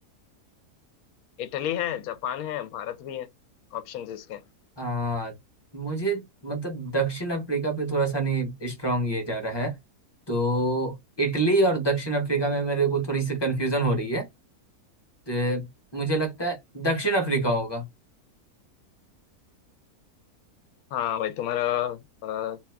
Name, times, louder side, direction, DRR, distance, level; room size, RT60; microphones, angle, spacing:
voice 1, 1.4-3.3 3.7-4.4 20.9-22.6, left 11 dB, 70° left, 1.0 m, -30 dB
voice 2, 4.8-5.3 5.7-9.7 10.3-14.3 15.3-15.7 15.9-17.8, right 2 dB, 20° left, 0.7 m, -26 dB
2.8 x 2.4 x 3.3 m
omnidirectional pair, 1.7 m